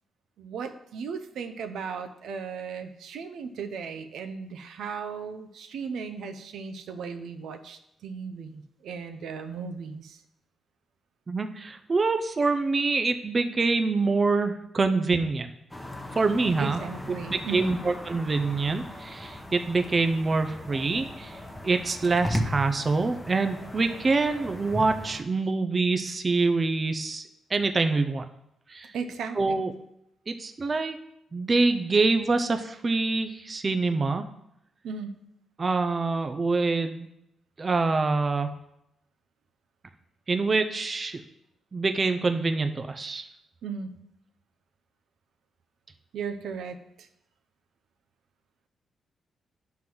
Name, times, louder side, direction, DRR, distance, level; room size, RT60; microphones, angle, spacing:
voice 1, 0.4-10.2 16.6-17.8 28.9-29.6 34.8-35.2 43.6-43.9 46.1-47.1, right 5 dB, 80° right, 7 dB, 0.7 m, -36 dB
voice 2, 11.3-15.5 16.1-16.8 17.3-21.4 21.6-27.2 27.5-28.2 28.7-28.9 29.4-29.7 30.3-31.0 31.3-34.2 35.6-37.1 37.6-38.5 40.3-41.2 41.7-43.3, right 3 dB, 30° right, 7 dB, 0.5 m, -25 dB
sound 1, 15.7-25.2, equal, 10° left, 0.9 m, -37 dB
9.1 x 3.8 x 6.0 m, 0.80 s
cardioid pair, 105°, 0 cm